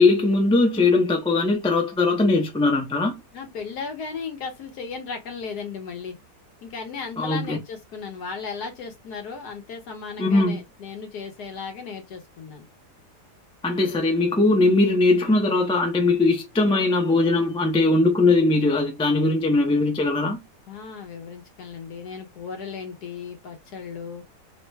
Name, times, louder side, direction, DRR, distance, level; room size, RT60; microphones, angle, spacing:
voice 1, 0.0-3.2 7.2-7.6 10.2-10.6 13.6-20.4, left 3 dB, 10° left, 0.4 m, -20 dB
voice 2, 3.3-6.1 6.6-12.7 20.7-24.2, left 5 dB, 75° left, 1.6 m, -35 dB
3.7 x 2.2 x 3.2 m
omnidirectional pair, 1.8 m